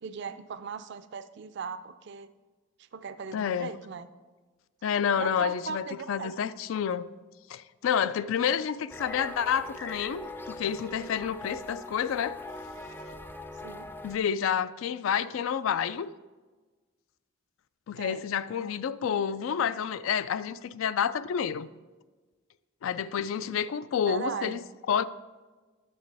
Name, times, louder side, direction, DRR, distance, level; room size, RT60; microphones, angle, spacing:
voice 1, 0.0-2.3 2.8-4.1 5.2-6.3 13.6-13.9 18.0-18.2 24.1-24.6, right 5 dB, 60° right, 12 dB, 0.4 m, -38 dB
voice 2, 3.3-3.7 4.8-7.1 7.5-12.4 14.0-16.1 17.9-21.7 22.8-24.6 24.9-25.0, left 8 dB, 85° left, 15 dB, 0.3 m, -29 dB
sound 1, 8.9-14.2, left 2 dB, 10° left, 0.3 m, -41 dB
10.5 x 6.6 x 3.4 m, 1.3 s
head